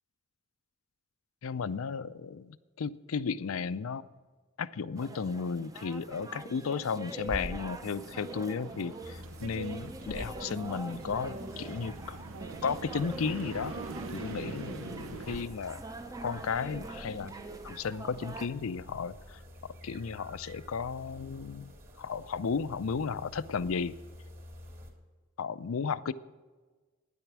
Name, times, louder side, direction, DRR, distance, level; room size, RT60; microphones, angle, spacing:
voice 1, 1.4-4.0 4.6-12.2 12.6-13.7 14.1-15.8 16.2-17.3 17.6-23.9 25.4-26.1, left 5 dB, 80° left, 15 dB, 0.5 m, -34 dB
sound 1, 5.0-18.5, right 2 dB, 15° right, 0.6 m, -43 dB
sound 2, 7.8-15.5, right 4 dB, 70° right, 0.6 m, -44 dB
sound 3, 9.0-24.9, left 1 dB, 40° right, 2.9 m, -50 dB
12.5 x 10.0 x 6.1 m, 1.4 s
head